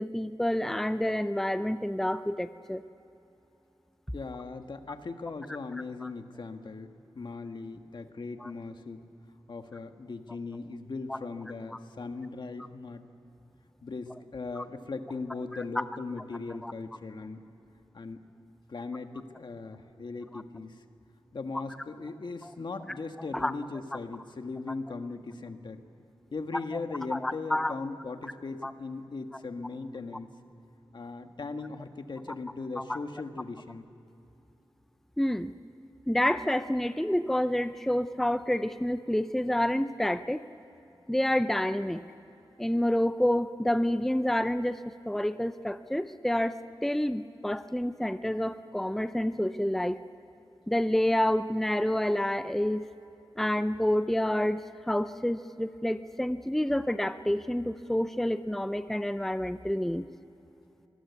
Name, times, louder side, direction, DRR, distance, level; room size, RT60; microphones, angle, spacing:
voice 1, 0.0-2.8 6.0-6.1 8.4-8.5 11.1-11.2 14.6-14.7 15.8-15.9 16.6-16.7 20.3-20.4 23.2-23.5 27.1-27.7 28.6-28.7 32.8-33.0 35.2-35.5 36.1-40.4 41.1-42.0 42.6-44.8 45.1-50.0 50.7-52.9 53.4-60.1, left 1 dB, 5° left, 11 dB, 0.6 m, -28 dB
voice 2, 4.1-6.9 7.1-9.0 9.5-13.1 13.8-17.4 17.9-18.3 18.7-20.8 21.3-25.8 26.3-30.3 30.9-33.8, left 3 dB, 60° left, 6 dB, 1.5 m, -39 dB
26.5 x 20.5 x 8.3 m, 3.0 s
wide cardioid pair, 115°, 9 cm